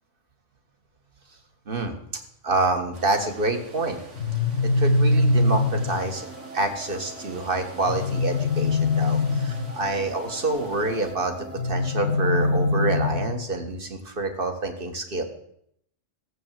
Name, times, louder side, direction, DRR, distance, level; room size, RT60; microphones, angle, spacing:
voice 1, 1.7-2.0 2.4-4.0 4.6-6.3 6.5-11.4 11.6-15.2, right 2 dB, 45° right, 5 dB, 1.9 m, -27 dB
sound 1, 2.9-11.1, right 2 dB, 80° right, 2.2 m, -46 dB
sound 2, 4.2-6.1 7.8-9.8 11.6-13.5, left 2 dB, 75° left, 1.1 m, -23 dB
sound 3, 5.1-13.1, right 2 dB, 10° right, 0.8 m, -42 dB
15.0 x 7.9 x 7.6 m, 0.72 s
omnidirectional pair, 1.2 m